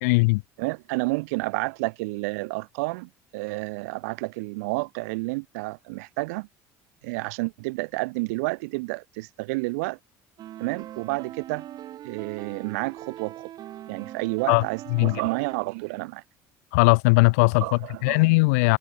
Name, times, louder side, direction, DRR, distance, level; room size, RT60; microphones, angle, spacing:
voice 1, 0.0-0.4 14.5-14.6 14.9-15.2 16.7-17.6 18.0-18.8, left 27 dB, 85° left, 0.9 m, -19 dB
voice 2, 0.6-6.5 7.0-10.0 10.6-11.6 12.0-13.5 13.9-16.2 17.6-18.3, right 26 dB, 85° right, 3.8 m, -30 dB
sound 1, 10.4-15.6, right 12 dB, 55° right, 6.5 m, -41 dB
supercardioid pair, 90°, 8 cm